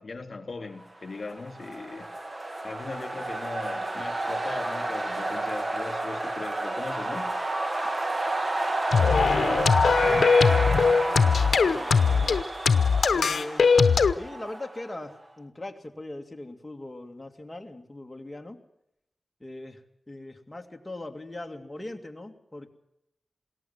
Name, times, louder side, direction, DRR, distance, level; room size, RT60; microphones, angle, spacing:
voice 1, 0.0-2.1 2.6-7.4, left 3 dB, 50° left, 6 dB, 3.1 m, -39 dB
sound 1, 1.2-15.0, right 2 dB, 30° right, 1.5 m, -30 dB
sound 2, 8.9-14.1, left 5 dB, 85° left, 0.8 m, -20 dB
voice 2, 9.0-9.8 10.0-12.4 13.1-13.7 14.1-18.6 19.4-22.7, left 2 dB, 20° left, 3 dB, 2.3 m, -41 dB
21.0 x 18.0 x 7.4 m, 0.82 s
wide cardioid pair, 100°, 0 cm